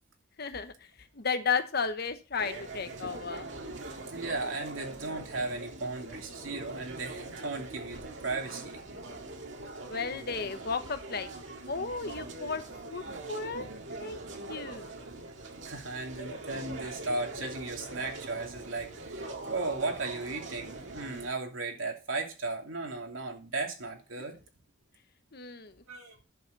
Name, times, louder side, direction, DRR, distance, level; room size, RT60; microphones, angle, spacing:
voice 1, 0.4-0.7 1.1-3.5 9.9-11.3 11.7-13.0 13.3-13.7 14.0-14.9 25.3-25.8, left 5 dB, 55° left, 9 dB, 1.1 m, -34 dB
sound 1, 2.4-21.3, right 2 dB, 70° right, 1.9 m, -42 dB
voice 2, 4.1-8.8 15.7-24.4 25.9-26.1, right 3 dB, 85° right, 1 dB, 2.7 m, -36 dB
11.0 x 7.3 x 4.1 m, 0.32 s
head